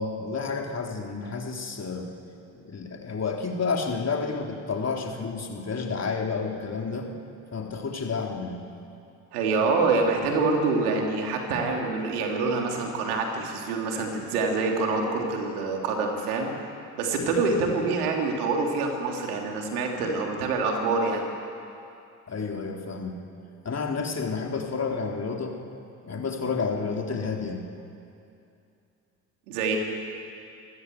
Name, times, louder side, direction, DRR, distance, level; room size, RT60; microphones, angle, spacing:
voice 1, 0.0-2.1 2.5-7.1 7.5-8.6 22.3-23.2 23.7-25.6 26.0-27.6, left 4 dB, 35° left, 1 dB, 3.6 m, -30 dB
voice 2, 9.3-16.5 17.0-21.2 29.5-29.8, right 3 dB, 80° right, 1 dB, 3.1 m, -26 dB
26.5 x 15.0 x 8.0 m, 2.6 s
hypercardioid pair, 55°, 44 cm